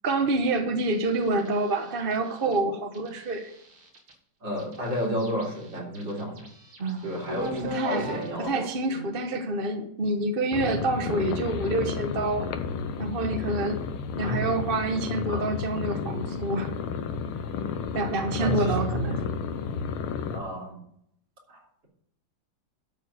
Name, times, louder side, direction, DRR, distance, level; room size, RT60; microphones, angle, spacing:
voice 1, 0.0-3.5 6.8-7.1 7.7-12.5 13.0-13.8 14.2-16.7 17.9-19.2, right 2 dB, 35° right, 5 dB, 0.9 m, -27 dB
sound 1, 0.8-2.6 2.9-4.1 4.6-8.4, left 1 dB, 80° right, 3.1 m, -39 dB
voice 2, 4.4-6.4 7.0-9.0 14.2-14.4 15.3-15.4 18.4-19.0 20.3-20.8 21.5-21.9, right 1 dB, 60° right, -3 dB, 4.2 m, -32 dB
sound 2, 10.5-20.4, left 6 dB, 90° left, 1.7 m, -32 dB
12.5 x 4.6 x 8.1 m, 0.71 s
omnidirectional pair, 2.3 m